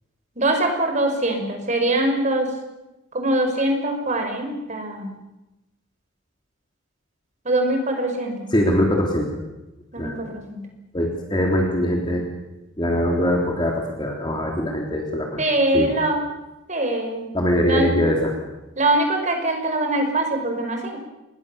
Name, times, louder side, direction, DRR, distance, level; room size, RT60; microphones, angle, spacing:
voice 1, 0.4-2.5 3.1-5.1 7.4-8.3 9.9-10.6 15.4-16.2 16.7-17.3 17.7-18.0 18.8-21.0, right 1 dB, 35° right, 4 dB, 5.3 m, -23 dB
voice 2, 8.5-9.4 10.0-10.2 10.9-12.2 12.8-15.4 15.7-15.9 17.3-18.3, equal, 25° left, 0 dB, 3.5 m, -22 dB
28.5 x 21.0 x 7.1 m, 0.98 s
head